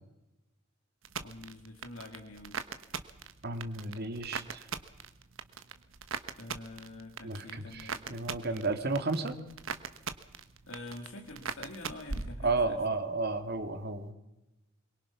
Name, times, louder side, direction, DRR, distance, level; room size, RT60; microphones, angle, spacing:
sound 1, 1.0-13.0 13.2-13.8, right 5 dB, 70° right, 1.2 m, -41 dB
voice 1, 1.2-2.6 6.4-9.0 10.7-12.8, left 2 dB, 70° left, 3 dB, 2.2 m, -46 dB
voice 2, 3.4-4.7 7.2-9.3 12.4-14.1, right 3 dB, 50° right, 8 dB, 2.1 m, -32 dB
24.0 x 22.5 x 5.8 m, 0.98 s
head